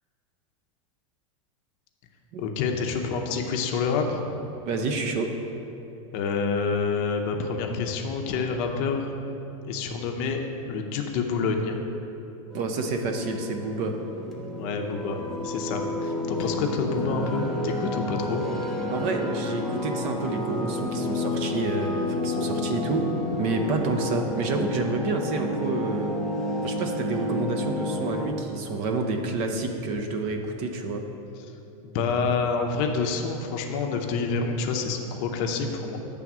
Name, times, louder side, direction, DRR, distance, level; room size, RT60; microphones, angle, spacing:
voice 1, 2.4-4.2 6.1-9.1 9.7-10.4 10.7-11.8 14.5-18.4 31.8-36.0, left 5 dB, 40° left, 3 dB, 0.6 m, -27 dB
voice 2, 4.6-5.3 12.5-14.0 18.9-23.1 23.4-26.2 26.6-31.1, right 3 dB, 40° right, 5 dB, 0.6 m, -29 dB
sound 1, 12.5-28.3, left 1 dB, ahead, 0.6 m, -30 dB
8.6 x 3.5 x 6.0 m, 2.9 s
supercardioid pair, 160°, 18 cm